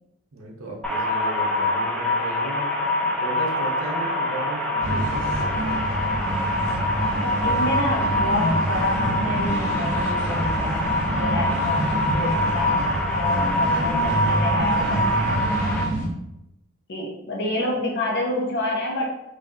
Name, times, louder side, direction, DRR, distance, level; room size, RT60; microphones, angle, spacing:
voice 1, 0.3-6.0, right 1 dB, 70° right, 0 dB, 0.8 m, -35 dB
sound 1, 0.8-15.8, left 1 dB, 5° left, 0.4 m, -24 dB
sound 2, 4.8-16.1, right 1 dB, 35° left, 1.2 m, -27 dB
voice 2, 7.2-12.8 13.1-15.5 16.9-19.1, left 1 dB, 50° left, -1 dB, 0.8 m, -29 dB
3.3 x 2.6 x 4.0 m, 0.90 s
head